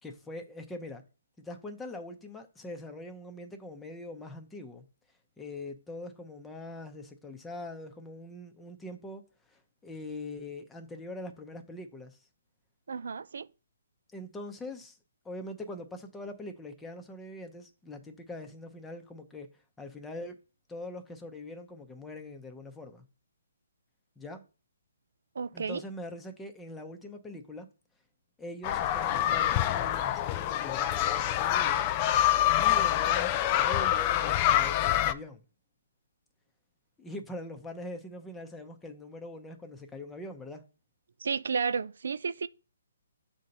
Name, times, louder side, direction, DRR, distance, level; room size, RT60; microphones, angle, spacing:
voice 1, 0.0-1.0 1.4-4.9 5.4-9.2 9.5-12.2 14.1-15.0 15.2-19.5 19.8-20.4 20.7-23.0 24.2-24.4 25.5-27.7 28.4-31.9 32.5-35.4 37.0-40.6, left 2 dB, 10° left, 0.7 m, -43 dB
voice 2, 12.9-13.5 25.4-25.8 41.2-42.5, right 5 dB, 75° right, 0.3 m, -32 dB
sound 1, 28.6-35.1, left 12 dB, 30° left, 0.3 m, -26 dB
7.4 x 2.8 x 5.2 m
hypercardioid pair, 150°, 0 cm